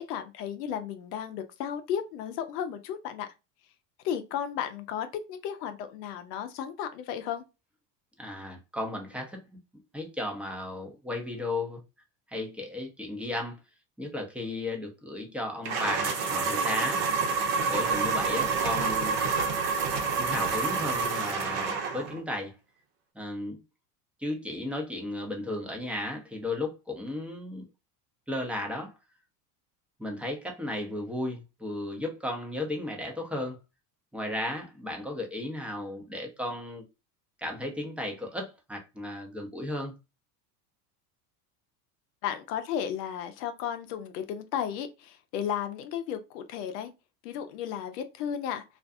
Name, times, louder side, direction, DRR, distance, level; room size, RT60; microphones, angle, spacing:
voice 1, 0.0-3.3 4.0-7.4 42.2-46.9 47.2-48.6, left 9 dB, 80° left, 0.6 m, -34 dB
voice 2, 8.2-9.4 9.9-11.8 12.3-13.6 14.0-17.0 17.7-19.2 20.1-22.5 23.1-23.6 24.2-27.6 28.3-28.9 30.0-33.6 34.1-36.8 37.4-40.0, left 1 dB, 5° right, 0.6 m, -34 dB
sound 1, 15.6-22.2, right 5 dB, 65° right, 1.0 m, -28 dB
2.5 x 2.2 x 2.5 m
hypercardioid pair, 85°, 48 cm